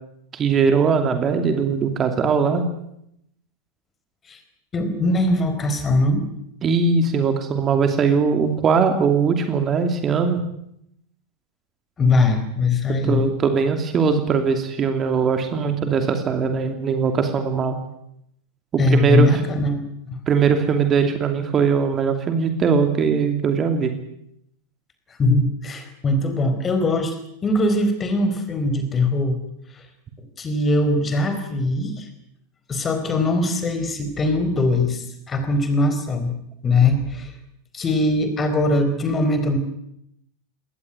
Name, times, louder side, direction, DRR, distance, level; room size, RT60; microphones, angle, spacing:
voice 1, 0.3-2.7 6.6-10.4 13.1-17.8 18.9-19.4 20.3-23.9, right 5 dB, 25° right, 7 dB, 2.7 m, -20 dB
voice 2, 4.7-6.2 12.0-13.2 18.8-20.2 25.2-27.2 27.4-29.4 29.7-29.8 30.4-32.1 32.7-36.3 36.6-37.3 37.7-39.6, left 2 dB, 20° left, 9 dB, 4.6 m, -21 dB
21.5 x 19.0 x 9.4 m, 0.78 s
figure-of-eight pair, 90°, 0 cm